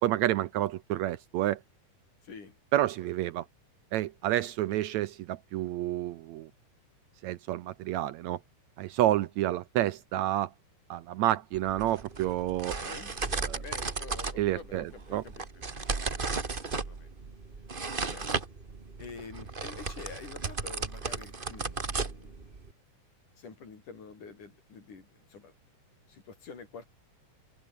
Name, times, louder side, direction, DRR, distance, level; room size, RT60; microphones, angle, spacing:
voice 1, 0.0-1.6 2.7-3.5 3.9-6.5 7.2-8.4 8.8-10.5 10.9-12.8 13.4-13.6 14.4-15.2, right 14 dB, 75° right, 1.8 m, -29 dB
voice 2, 2.2-2.6 12.8-15.6 16.0-16.6 16.8-17.1 18.1-18.3 19.0-22.4 23.4-25.5 26.1-26.9, left 5 dB, 75° left, 6.5 m, -48 dB
sound 1, 11.5-22.7, right 4 dB, 30° right, 1.0 m, -35 dB
open air
omnidirectional pair, 3.7 m